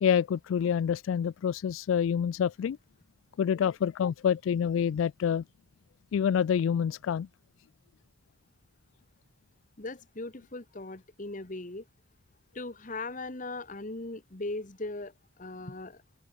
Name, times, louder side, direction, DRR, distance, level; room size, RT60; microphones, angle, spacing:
voice 1, 0.0-2.8 3.4-5.4 6.1-7.3, left 8 dB, 85° left, 0.3 m, -27 dB
voice 2, 9.8-11.8 12.5-15.1 15.4-16.0, left 2 dB, 40° left, 1.4 m, -38 dB
open air
head